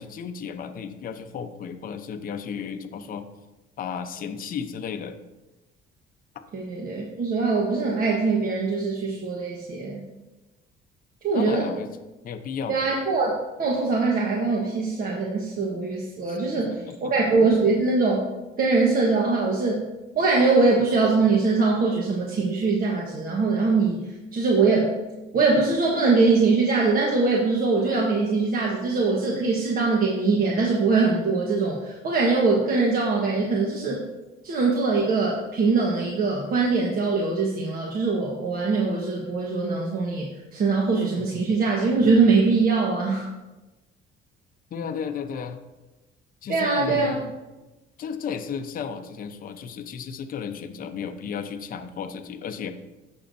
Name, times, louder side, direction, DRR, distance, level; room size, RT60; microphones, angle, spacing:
voice 1, 0.0-3.3 3.8-5.2 6.3-6.4 11.3-11.9 12.2-12.8 16.3-17.1 41.3-41.4 44.7-45.6 46.4-47.3 48.0-52.7, left 6 dB, 40° left, 7 dB, 0.7 m, -34 dB
voice 2, 6.5-10.0 11.2-11.7 12.7-13.3 13.6-16.7 17.0-18.3 18.6-19.9 20.2-24.0 24.3-25.0 25.3-34.0 34.4-43.3 46.5-47.2, right 4 dB, 45° right, -2 dB, 1.3 m, -22 dB
15.5 x 6.4 x 2.7 m, 1.1 s
cardioid pair, 130°, 21 cm